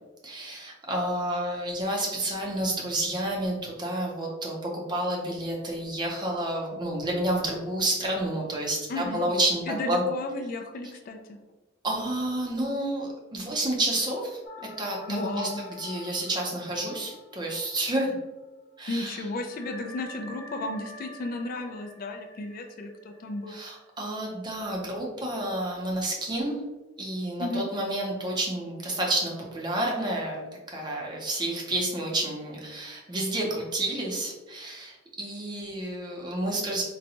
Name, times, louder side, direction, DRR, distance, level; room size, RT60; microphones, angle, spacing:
voice 1, 0.2-10.0 11.8-14.4 14.8-18.1 18.8-19.2 23.5-26.6 27.0-36.8, right 1 dB, 25° right, -1 dB, 0.7 m, -30 dB
voice 2, 8.9-9.3 9.7-11.4 15.1-15.6 18.9-23.6 27.4-27.7, left 2 dB, 45° left, 5 dB, 0.3 m, -33 dB
sound 1, 14.4-18.5 18.7-18.8 19.5-24.1, left 2 dB, 65° left, 0.8 m, -47 dB
3.9 x 2.2 x 2.8 m, 1.1 s
head